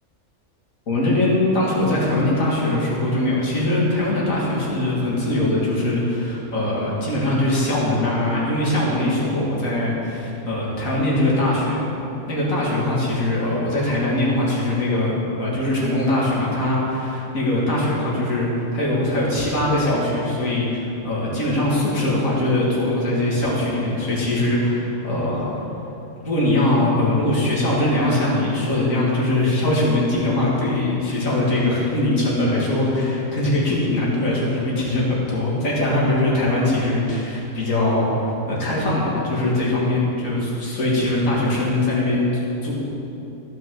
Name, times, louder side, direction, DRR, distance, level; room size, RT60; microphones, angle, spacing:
voice 1, 0.9-11.8 12.3-15.1 15.4-25.5 26.2-42.7, left 1 dB, 70° left, -6 dB, 2.4 m, -21 dB
14.5 x 6.0 x 3.8 m, 3.0 s
omnidirectional pair, 1.5 m